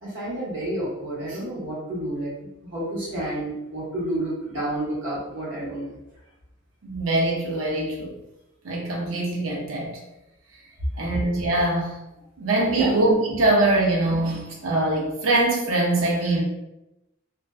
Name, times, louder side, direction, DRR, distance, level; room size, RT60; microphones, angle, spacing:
voice 1, 0.0-5.9 12.6-12.9, right 1 dB, 60° right, -9 dB, 1.2 m, -30 dB
voice 2, 6.8-8.1 8.6-10.0 11.0-11.9 12.4-16.4, right 2 dB, 85° right, -2 dB, 0.5 m, -23 dB
2.5 x 2.2 x 2.3 m, 0.92 s
head